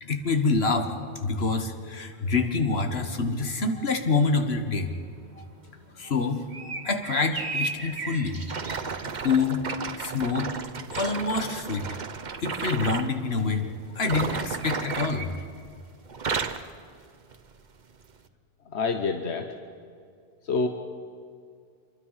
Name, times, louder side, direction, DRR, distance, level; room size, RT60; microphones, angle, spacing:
voice 1, 0.0-0.9 1.2-4.9 5.4-5.5 6.0-8.4 9.2-9.6 10.0-10.5 10.9-11.9 12.4-13.7 14.0-15.3, left 4 dB, 70° left, 6 dB, 1.8 m, -26 dB
sound 1, 4.0-15.3, right 3 dB, 80° right, 2.0 m, -37 dB
sound 2, 8.5-13.1 14.0-15.8 16.1-16.7 17.3-17.5 18.2-18.3, right 5 dB, 45° right, 1.0 m, -33 dB
voice 2, 18.7-19.5 20.4-20.7, left 4 dB, 85° left, 6 dB, 1.3 m, -26 dB
26.0 x 22.5 x 5.7 m, 2.3 s
omnidirectional pair, 1.1 m